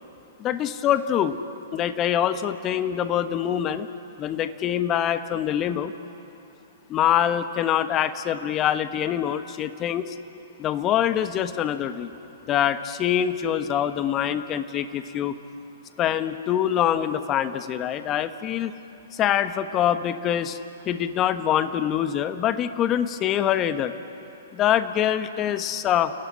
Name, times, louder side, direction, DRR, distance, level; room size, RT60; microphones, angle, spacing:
voice 1, 0.4-1.4 1.7-3.9 4.2-5.9 6.9-10.1 10.6-12.1 12.5-15.3 16.0-18.7 19.1-20.6 20.8-23.9 24.5-26.1, left 10 dB, 30° left, 10 dB, 1.2 m, -24 dB
29.5 x 17.5 x 9.9 m, 2.9 s
hypercardioid pair, 120°, 0 cm